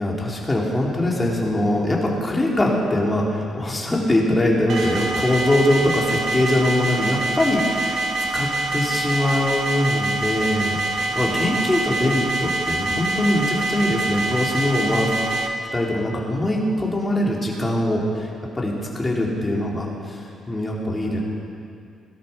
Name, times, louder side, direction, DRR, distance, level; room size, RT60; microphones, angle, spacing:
voice 1, 0.0-8.1 8.3-21.2, left 1 dB, 20° left, -3 dB, 3.6 m, -22 dB
sound 1, 4.7-15.5, right 2 dB, 65° right, 1.7 m, -25 dB
18.0 x 12.5 x 6.0 m, 2.4 s
cardioid pair, 90°, 0 cm